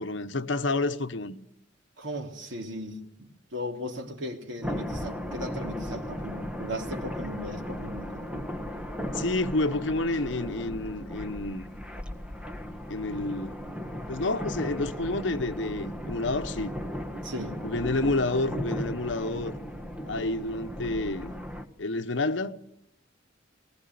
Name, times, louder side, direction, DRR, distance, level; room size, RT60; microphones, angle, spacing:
voice 1, 0.0-1.4 9.1-11.7 12.9-13.6 14.1-16.7 17.6-19.6 20.1-21.3 21.8-22.6, left 2 dB, 70° left, 1.1 m, -29 dB
voice 2, 2.0-8.2 17.2-17.6, equal, 75° right, 3.2 m, -37 dB
sound 1, 4.6-21.6, equal, 5° right, 1.6 m, -36 dB
21.0 x 20.0 x 9.5 m
head